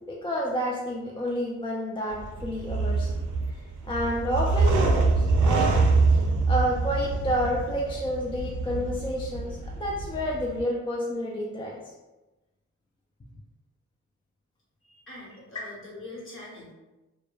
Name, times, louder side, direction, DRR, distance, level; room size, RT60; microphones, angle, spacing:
voice 1, 0.0-3.1 3.8-5.8 6.1-6.2 6.5-9.5 9.8-11.8, equal, 20° left, -2 dB, 0.3 m, -29 dB
sound 1, 2.1-10.6, right 3 dB, 85° right, 0.4 m, -25 dB
voice 2, 14.8-16.7, left 2 dB, 45° left, -5 dB, 1.0 m, -43 dB
2.2 x 2.2 x 3.0 m, 1.1 s
cardioid pair, 80°, 29 cm